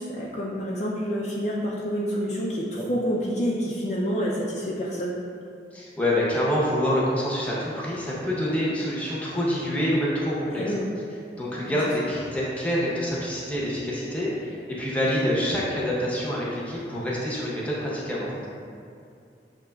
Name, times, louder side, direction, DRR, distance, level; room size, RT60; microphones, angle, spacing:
voice 1, 0.0-5.1 10.5-10.8 11.6-11.8, equal, 40° left, -5 dB, 0.4 m, -28 dB
voice 2, 5.7-10.8 11.3-18.3, equal, 10° left, -6 dB, 0.7 m, -26 dB
7.2 x 2.8 x 2.3 m, 2.4 s
head